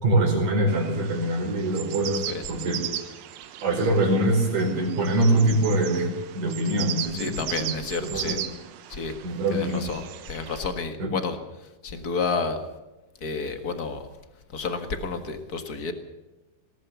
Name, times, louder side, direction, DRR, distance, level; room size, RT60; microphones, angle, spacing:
voice 1, 0.0-2.8 3.6-7.7 8.0-8.4 9.2-9.8 11.0-11.1, right 1 dB, 60° right, 2 dB, 6.2 m, -24 dB
sound 1, 0.7-10.7, right 12 dB, 75° right, 2.8 m, -37 dB
voice 2, 7.1-8.4 8.9-9.1 9.5-12.6 13.2-14.1 14.5-15.9, left 4 dB, 65° left, 7 dB, 0.9 m, -31 dB
20.0 x 18.5 x 7.0 m, 1.1 s
omnidirectional pair, 4.4 m